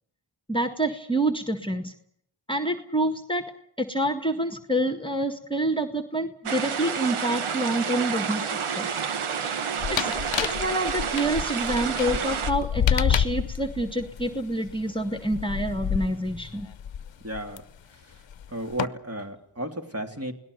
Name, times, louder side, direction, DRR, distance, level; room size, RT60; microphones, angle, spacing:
voice 1, 0.5-1.9 2.5-3.4 3.8-9.0 9.9-10.1 10.4-16.7, right 1 dB, 10° left, 7 dB, 1.8 m, -27 dB
sound 1, 6.5-12.5, right 6 dB, 85° right, 1.4 m, -29 dB
sound 2, 9.8-17.6 18.3-18.9, left 9 dB, 65° left, 0.9 m, -28 dB
voice 2, 17.2-17.6 18.5-20.3, right 1 dB, 30° right, 4 dB, 3.4 m, -33 dB
28.5 x 18.5 x 6.7 m, 0.71 s
cardioid pair, 40°, 48 cm